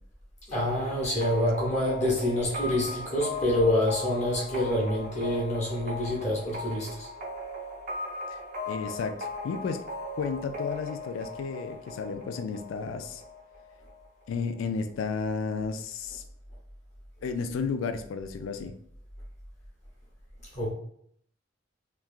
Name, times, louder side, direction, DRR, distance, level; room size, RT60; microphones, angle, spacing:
voice 1, 0.5-7.1 20.5-20.7, left 1 dB, 35° left, -4 dB, 0.9 m, -27 dB
sound 1, 0.5-14.0, left 2 dB, 45° right, 0.6 m, -38 dB
voice 2, 8.7-9.9 10.1-13.2 14.3-16.2 17.2-18.7, left 5 dB, 85° left, 9 dB, 0.3 m, -32 dB
3.0 x 2.3 x 2.4 m, 0.66 s
head